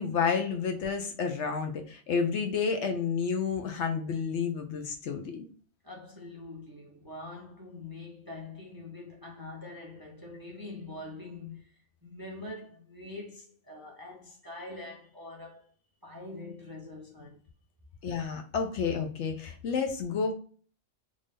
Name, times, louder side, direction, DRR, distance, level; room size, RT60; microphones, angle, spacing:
voice 1, 0.0-5.5 18.0-20.3, left 5 dB, 65° left, 0.9 m, -30 dB
voice 2, 5.8-15.7 16.0-17.4, left 2 dB, 20° right, 0.6 m, -44 dB
3.6 x 2.6 x 3.3 m
omnidirectional pair, 1.4 m